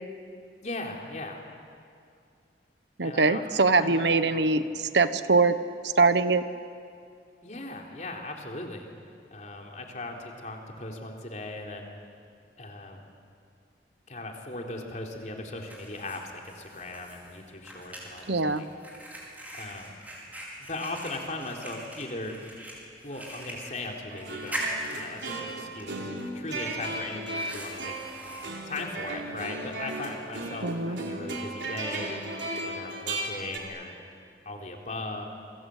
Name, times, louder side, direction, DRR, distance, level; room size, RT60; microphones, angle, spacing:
voice 1, 0.6-1.4 3.0-4.5 7.4-8.9 9.3-11.9 12.6-13.0 14.1-18.7 19.5-19.9 20.7-22.3 23.0-24.6 24.9-27.9 28.7-32.2 32.6-33.9 34.5-35.2, left 2 dB, 40° left, 1 dB, 3.5 m, -38 dB
voice 2, 3.0-4.6 4.9-5.6 6.0-6.4 18.3-18.6 30.6-31.0, right 3 dB, 75° right, 11 dB, 1.1 m, -22 dB
Fire, 15.0-29.9, right 1 dB, 10° right, 5.5 m, -42 dB
sound 1, 24.1-33.6, right 2 dB, 90° right, 4.1 m, -36 dB
28.5 x 24.0 x 8.4 m, 2.4 s
head